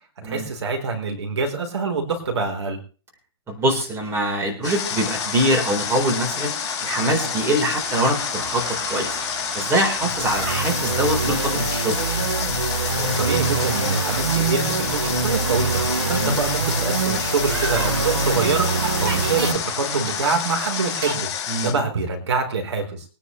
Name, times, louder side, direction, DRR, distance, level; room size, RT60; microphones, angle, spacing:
voice 1, 0.2-2.8 13.0-15.8 16.1-21.3 21.6-23.0, right 4 dB, 70° right, 3 dB, 4.1 m, -25 dB
voice 2, 3.5-6.5 6.8-9.2 9.5-12.0 16.1-16.4 21.5-21.7, right 1 dB, 15° right, 1 dB, 4.1 m, -23 dB
Water, 4.6-21.7, left 8 dB, 25° left, 4.2 m, -29 dB
sound 1, 4.6-21.2, right 4 dB, 50° right, 6.9 m, -35 dB
sound 2, 10.2-19.5, right 4 dB, 90° right, 3.9 m, -24 dB
23.0 x 10.0 x 3.2 m, 0.37 s
hypercardioid pair, 130°, 15 cm